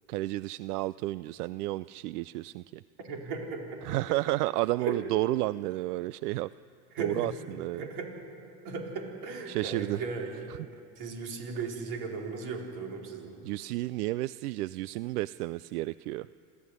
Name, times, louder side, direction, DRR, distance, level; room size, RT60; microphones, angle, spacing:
voice 1, 0.1-2.8 3.8-6.5 7.0-7.9 9.5-10.0 10.5-10.6 13.4-16.3, right 18 dB, 85° right, 17 dB, 0.5 m, -31 dB
voice 2, 3.0-4.0 4.8-5.0 6.9-7.3 7.7-8.1 8.6-10.5 11.0-13.4, right 4 dB, 55° right, 1 dB, 4.8 m, -36 dB
27.0 x 14.0 x 9.7 m, 2.6 s
supercardioid pair, 110°, 44 cm